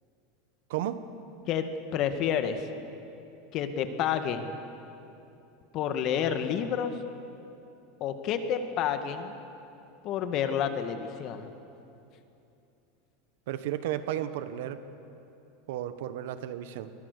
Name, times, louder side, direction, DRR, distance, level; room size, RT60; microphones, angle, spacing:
voice 1, 0.7-1.0 13.5-14.8 15.7-16.9, right 12 dB, 75° right, 11 dB, 1.4 m, -33 dB
voice 2, 1.9-2.7 3.5-4.6 5.7-7.0 8.0-9.3 10.0-11.5, left 8 dB, 45° left, 8 dB, 1.9 m, -29 dB
26.0 x 21.0 x 6.8 m, 2.8 s
supercardioid pair, 135°, 0 cm